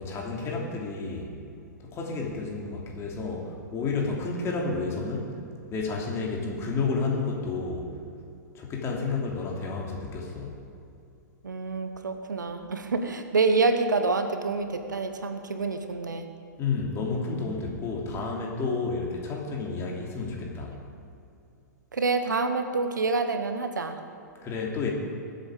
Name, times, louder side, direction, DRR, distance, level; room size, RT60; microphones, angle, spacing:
voice 1, 0.0-1.3 1.8-5.4 5.7-7.9 8.5-10.6 16.6-20.8 24.4-24.9, left 4 dB, 25° left, -1 dB, 3.0 m, -31 dB
voice 2, 11.4-16.3 21.9-24.0, right 3 dB, 80° right, 8 dB, 1.1 m, -27 dB
22.0 x 8.1 x 5.0 m, 2.6 s
figure-of-eight pair, 110°, 10 cm